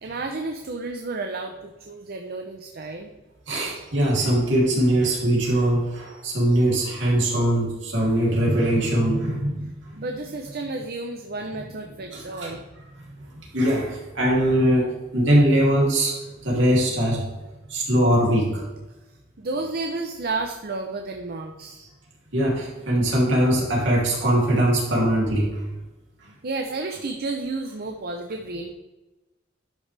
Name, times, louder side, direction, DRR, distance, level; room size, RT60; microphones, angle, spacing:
voice 1, 0.0-3.1 10.0-12.7 19.4-21.8 26.4-28.7, right 3 dB, 55° right, 4 dB, 0.7 m, -31 dB
voice 2, 3.5-9.7 12.1-12.5 13.5-16.1 16.4-17.3 17.7-18.6 22.3-25.6, right 1 dB, 70° right, -3 dB, 3.0 m, -21 dB
11.0 x 5.9 x 3.4 m, 1.1 s
head